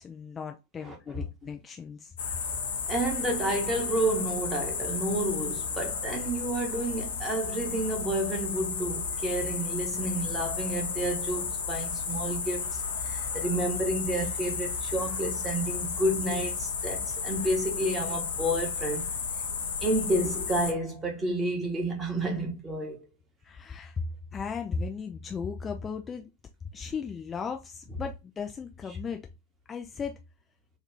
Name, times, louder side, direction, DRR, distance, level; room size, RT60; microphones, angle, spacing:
voice 1, 0.0-2.1 23.4-24.0 24.3-26.3 26.7-29.2 29.7-30.1, left 5 dB, 20° left, 0.3 m, -36 dB
voice 2, 0.8-1.2 2.9-19.1 19.8-23.1, right 1 dB, 15° right, 1.1 m, -30 dB
sound 1, 2.2-20.7, left 5 dB, 60° left, 0.6 m, -33 dB
2.9 x 2.3 x 3.4 m
figure-of-eight pair, 90°, 0 cm